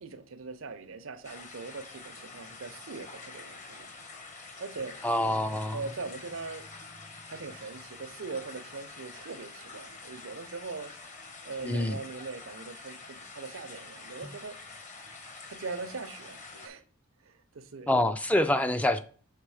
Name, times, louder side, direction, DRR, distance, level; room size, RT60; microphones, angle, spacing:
voice 1, 0.0-3.9 4.6-5.0 5.7-6.7 7.3-10.9 11.4-14.6 15.5-16.8 17.2-17.9, right 4 dB, 80° right, 0.7 m, -41 dB
sound 1, 1.2-16.7, left 3 dB, 40° left, 1.0 m, -47 dB
voice 2, 5.0-5.8 11.6-12.0 17.9-19.0, left 1 dB, 5° left, 0.3 m, -26 dB
6.7 x 3.4 x 4.7 m
head